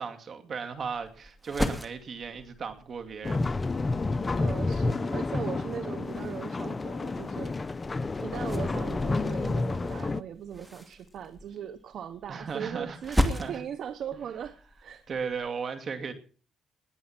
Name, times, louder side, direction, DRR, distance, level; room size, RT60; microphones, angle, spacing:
voice 1, 0.0-3.8 12.3-13.6 15.1-16.1, right 5 dB, 50° right, 2.6 m, -36 dB
sound 1, 0.7-15.5, left 1 dB, 5° right, 2.3 m, -37 dB
sound 2, 3.2-10.2, left 3 dB, 25° left, 0.8 m, -30 dB
voice 2, 4.3-7.5 8.2-15.1, right 8 dB, 65° right, 0.9 m, -39 dB
20.5 x 8.5 x 6.0 m
cardioid pair, 90°, 0 cm